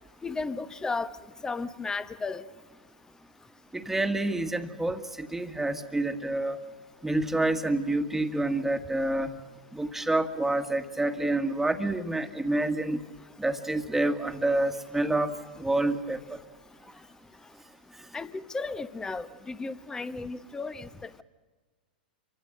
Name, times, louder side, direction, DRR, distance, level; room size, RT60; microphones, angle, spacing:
voice 1, 0.2-1.1 1.4-2.4 18.1-21.2, left 4 dB, 10° left, 1.1 m, -34 dB
voice 2, 3.7-6.6 7.0-9.3 9.7-13.0 13.4-16.4, right 2 dB, 5° right, 1.8 m, -28 dB
28.5 x 25.0 x 6.4 m
hypercardioid pair, 100°, 5 cm